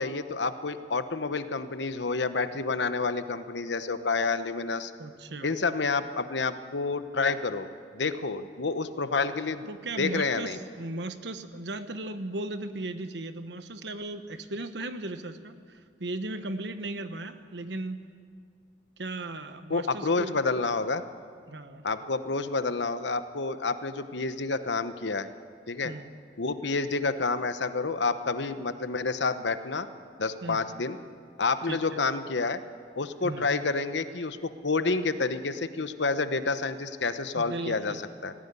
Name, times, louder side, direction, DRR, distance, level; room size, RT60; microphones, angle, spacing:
voice 1, 0.0-4.9 5.4-7.7 7.9-9.7 10.0-10.6 19.7-21.0 21.8-25.3 25.7-25.9 26.4-29.9 30.2-31.0 31.4-32.6 33.0-38.3, left 4 dB, 80° left, 11 dB, 1.0 m, -29 dB
voice 2, 5.0-5.5 9.7-18.0 19.0-20.3 21.5-21.8 25.8-26.1 30.4-30.7 31.7-32.0 33.2-33.5 37.4-38.0, right 2 dB, 70° right, 9 dB, 1.2 m, -36 dB
19.0 x 15.0 x 9.7 m, 2.1 s
head